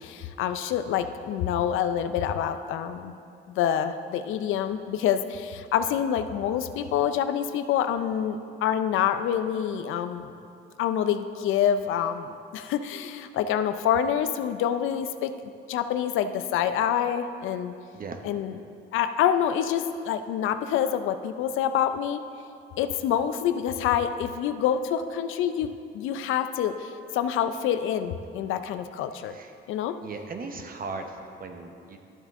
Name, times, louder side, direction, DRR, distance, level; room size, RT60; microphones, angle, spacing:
voice 1, 0.0-3.1 3.5-10.4 10.8-15.3 15.7-17.7 18.2-18.6 18.9-22.2 22.8-29.4 29.7-30.0, left 9 dB, 85° left, 10 dB, 0.5 m, -27 dB
voice 2, 17.9-18.2 29.3-29.5 30.0-32.0, right 3 dB, 45° right, 5 dB, 0.9 m, -38 dB
12.0 x 8.1 x 3.6 m, 2.5 s
cardioid pair, 90°, 20 cm